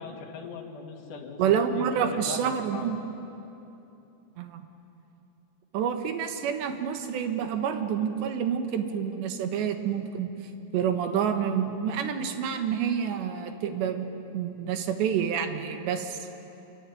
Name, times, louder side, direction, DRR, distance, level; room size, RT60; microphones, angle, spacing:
voice 1, 0.0-2.9, left 5 dB, 50° left, 1 dB, 3.3 m, -40 dB
voice 2, 1.4-3.0 4.4-4.6 5.7-10.3 10.7-16.3, right 8 dB, 75° right, 7 dB, 3.6 m, -28 dB
26.5 x 24.0 x 9.3 m, 2.9 s
omnidirectional pair, 5.1 m